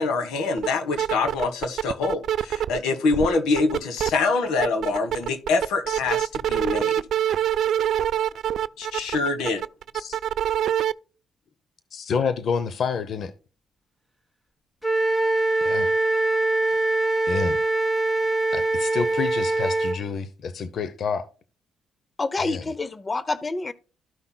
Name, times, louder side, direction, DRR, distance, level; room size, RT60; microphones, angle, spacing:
voice 1, 0.0-6.9 8.8-9.6, left 3 dB, 90° left, 1.4 m, -25 dB
sound 1, 0.6-0.7 0.9-2.8 3.1-4.1 4.5-10.9, right 11 dB, 70° right, 0.3 m, -25 dB
voice 2, 11.9-13.3 15.6-15.9 17.3-17.6 18.5-21.3 22.4-22.6, left 6 dB, 60° left, 0.8 m, -28 dB
Wind instrument woodwind instrument, 14.8-20.0, right 2 dB, 10° left, 1.4 m, -23 dB
voice 3, 22.2-23.7, left 3 dB, 30° left, 0.6 m, -27 dB
14.0 x 5.7 x 2.2 m
cardioid pair, 90°, 0 cm